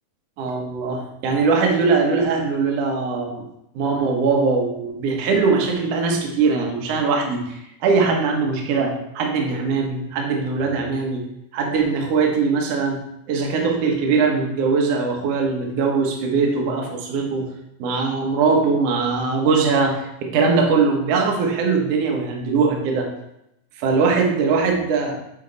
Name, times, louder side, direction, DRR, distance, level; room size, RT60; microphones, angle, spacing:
voice 1, 0.4-3.5 3.7-11.3 11.5-13.0 13.3-17.5 17.8-23.1 23.8-25.2, right 4 dB, 65° right, 1 dB, 1.8 m, -21 dB
8.8 x 3.5 x 3.9 m, 0.82 s
omnidirectional pair, 3.8 m